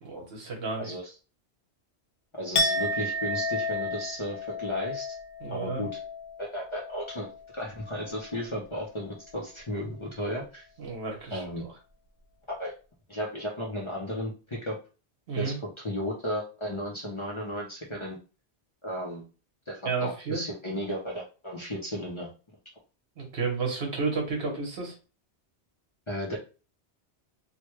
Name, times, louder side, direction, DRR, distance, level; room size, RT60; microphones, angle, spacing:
voice 1, 0.0-0.9 5.4-5.8 10.8-11.7 15.3-15.6 19.8-20.4 23.2-24.9, right 4 dB, 60° right, 0 dB, 1.2 m, -32 dB
voice 2, 0.8-1.1 2.4-5.1 5.5-5.9 6.4-7.3 7.5-10.6 11.3-11.6 12.5-12.7 13.1-14.8 15.4-18.2 18.8-19.2 19.7-22.3 26.1-26.4, equal, 30° left, -3 dB, 0.7 m, -34 dB
Chink clink, 2.5-8.5 8.8-9.2, left 1 dB, 75° left, 0.8 m, -33 dB
3.2 x 2.2 x 3.1 m, 0.34 s
omnidirectional pair, 1.1 m